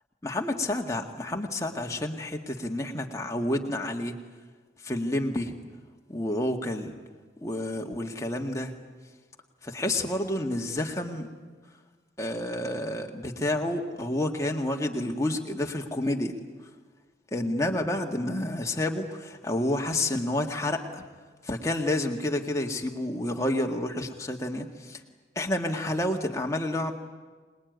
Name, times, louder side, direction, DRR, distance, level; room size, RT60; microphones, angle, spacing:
voice 1, 0.2-4.1 4.8-5.5 6.1-6.9 7.4-8.7 9.6-11.3 12.2-16.3 17.3-21.0 21.4-25.0 25.4-26.9, left 1 dB, 15° left, 2 dB, 2.0 m, -29 dB
26.0 x 21.0 x 9.4 m, 1.4 s
head